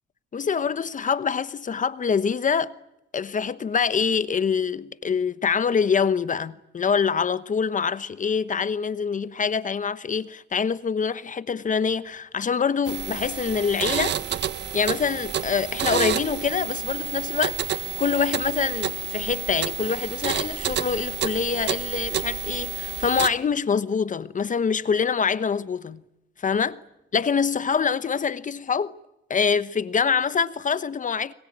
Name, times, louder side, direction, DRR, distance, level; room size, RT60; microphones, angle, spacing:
voice 1, 0.3-2.7 3.1-14.2 14.7-26.0 26.4-26.8 27.1-28.9 29.3-31.3, left 6 dB, 40° left, 1.1 m, -25 dB
sound 1, 12.8-23.3, right 9 dB, 60° right, 1.5 m, -29 dB
24.5 x 22.5 x 8.8 m
cardioid pair, 90°, 20 cm